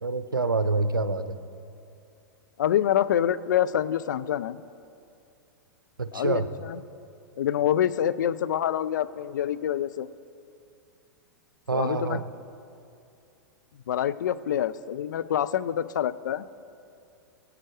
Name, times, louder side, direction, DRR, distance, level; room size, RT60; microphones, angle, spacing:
voice 1, 0.0-1.4 6.0-6.5 11.7-12.2, right 3 dB, 80° right, 12 dB, 0.6 m, -26 dB
voice 2, 2.6-4.6 6.1-6.8 7.4-10.1 11.7-12.2 13.9-16.5, left 10 dB, 60° left, 14 dB, 0.4 m, -26 dB
21.5 x 8.7 x 3.2 m, 2.5 s
figure-of-eight pair, 100°, 11 cm